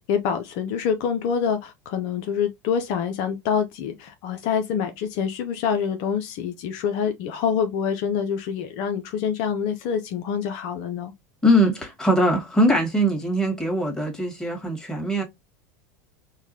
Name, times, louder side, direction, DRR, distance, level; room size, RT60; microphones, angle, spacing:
voice 1, 0.0-11.1, left 7 dB, 60° left, 0.6 m, -26 dB
voice 2, 11.4-15.2, equal, 5° left, 1.7 m, -21 dB
4.7 x 2.2 x 2.8 m
hypercardioid pair, 95°, 9 cm